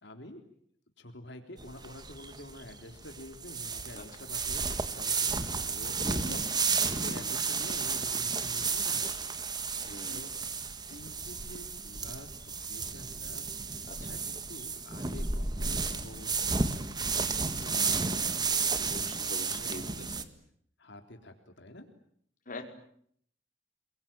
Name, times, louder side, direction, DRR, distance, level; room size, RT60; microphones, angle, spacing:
voice 1, 0.0-0.4 1.0-9.3 10.1-10.3 10.9-13.5 14.0-19.0 19.3-19.9 20.8-21.9, left 1 dB, 65° left, 5 dB, 3.7 m, -48 dB
sound 1, 1.6-20.2, right 4 dB, 25° right, 1.8 m, -32 dB
voice 2, 9.9-10.3 13.9-14.2 18.9-20.3 22.5-22.6, left 2 dB, 45° left, 4 dB, 5.3 m, -44 dB
29.0 x 23.0 x 9.0 m, 0.67 s
head